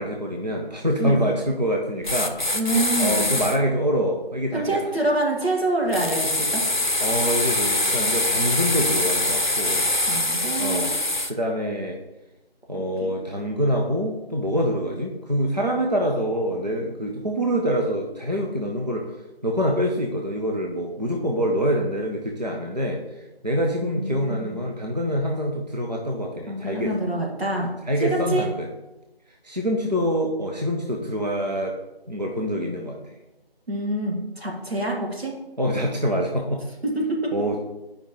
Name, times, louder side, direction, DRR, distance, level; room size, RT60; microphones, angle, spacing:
voice 1, 0.0-2.4 3.0-4.8 7.0-9.9 10.6-11.0 11.3-12.0 12.7-19.1 19.4-27.0 27.5-28.7 29.4-31.8 32.1-33.2 35.6-36.7 37.3-37.6, equal, 45° right, 0 dB, 0.7 m, -25 dB
sound 1, 2.0-3.6 5.9-11.3, left 1 dB, 50° left, 0.6 m, -24 dB
voice 2, 2.5-3.2 4.5-6.6 10.0-11.0 12.8-13.2 23.8-24.6 26.5-27.7 28.0-28.5 33.7-35.3 36.8-37.3, right 1 dB, 80° right, -2 dB, 2.2 m, -26 dB
9.3 x 5.0 x 3.1 m, 1.0 s
figure-of-eight pair, 180°, 31 cm